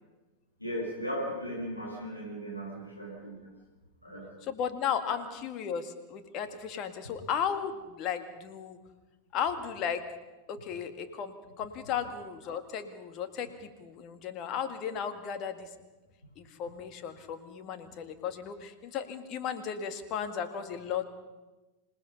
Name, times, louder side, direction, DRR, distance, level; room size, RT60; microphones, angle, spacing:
voice 1, 0.6-3.5 4.0-4.2, equal, 90° left, -3 dB, 5.7 m, -37 dB
voice 2, 4.4-8.8 9.3-10.1 10.5-15.7 16.4-21.1, left 8 dB, 35° left, 8 dB, 2.0 m, -35 dB
27.0 x 19.0 x 5.6 m, 1.1 s
figure-of-eight pair, 90°, 0 cm